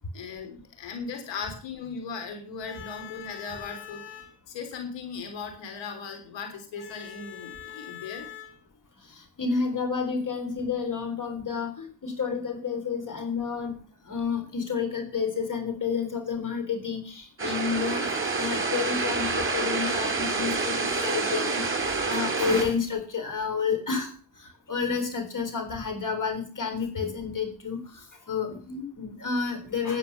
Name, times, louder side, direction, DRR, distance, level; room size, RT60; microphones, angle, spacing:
voice 1, 0.1-8.6, left 5 dB, 90° left, 5 dB, 3.4 m, -37 dB
voice 2, 9.1-13.8 14.0-30.0, left 5 dB, 45° left, 6 dB, 4.1 m, -30 dB
sound 1, 17.4-22.6, right 3 dB, 30° right, 3.6 m, -27 dB
10.5 x 9.0 x 7.0 m, 0.40 s
supercardioid pair, 65°, 43 cm